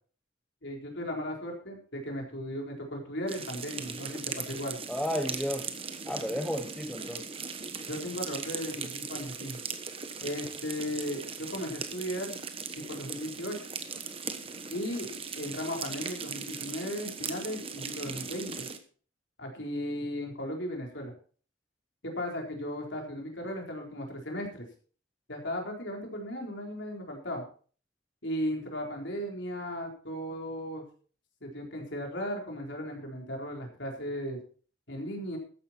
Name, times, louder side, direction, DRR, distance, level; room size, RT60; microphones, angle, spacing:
voice 1, 0.6-4.8 7.9-9.6 10.2-12.4 12.8-13.7 14.7-15.1 15.3-18.7 19.4-21.1 22.0-24.6 25.3-27.4 28.2-30.8 31.4-34.4 34.9-35.4, equal, 60° left, 1 dB, 4.1 m, -36 dB
sound 1, 3.3-18.8, right 5 dB, 25° right, 1.2 m, -39 dB
voice 2, 4.9-5.8 6.1-7.3 10.2-10.3, equal, 5° left, 5 dB, 0.8 m, -33 dB
14.0 x 10.0 x 4.5 m, 0.42 s
head